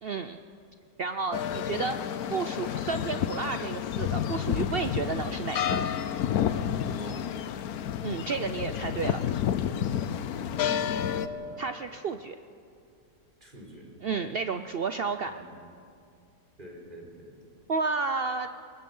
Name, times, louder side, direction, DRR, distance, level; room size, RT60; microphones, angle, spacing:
voice 1, 0.0-0.4 1.0-2.0 2.3-5.8 8.0-9.2 11.6-12.4 14.0-15.3 17.7-18.5, right 4 dB, 60° right, 9 dB, 0.6 m, -31 dB
sound 1, 1.3-11.3, left 9 dB, 80° left, 1.2 m, -30 dB
voice 2, 6.9-7.3 10.3-11.6 13.4-14.2 15.3-15.5 16.6-17.5, equal, 30° right, -1 dB, 4.3 m, -45 dB
23.0 x 20.5 x 5.5 m, 2.4 s
omnidirectional pair, 1.6 m